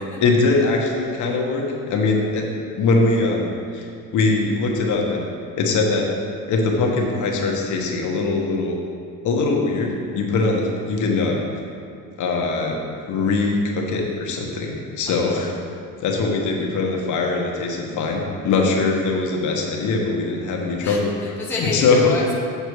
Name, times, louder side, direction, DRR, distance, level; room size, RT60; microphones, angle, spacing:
voice 1, 0.2-2.5 2.8-5.3 5.6-6.1 6.5-8.8 9.2-11.7 12.2-12.8 13.1-15.5 16.0-21.1 21.5-22.2, left 3 dB, 55° left, 0 dB, 1.2 m, -21 dB
voice 2, 15.1-15.4 20.8-22.3, left 2 dB, 5° left, -4 dB, 0.6 m, -29 dB
7.2 x 6.9 x 4.7 m, 2.4 s
cardioid pair, 170°, 37 cm